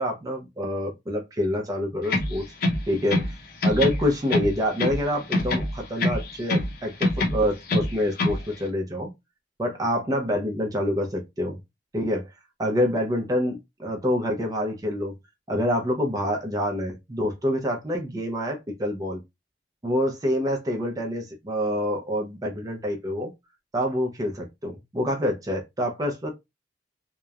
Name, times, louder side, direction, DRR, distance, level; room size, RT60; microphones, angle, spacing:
voice 1, 0.0-2.4 2.9-3.3 3.6-9.1 9.6-11.6 11.9-12.3 12.6-15.1 15.5-19.2 19.8-23.3 23.7-26.3, equal, 20° right, 0.5 m, -26 dB
sound 1, 2.0-3.4 3.6-5.0 5.3-6.7 7.0-8.4, left 2 dB, 60° left, 0.7 m, -25 dB
2.9 x 2.0 x 2.3 m
head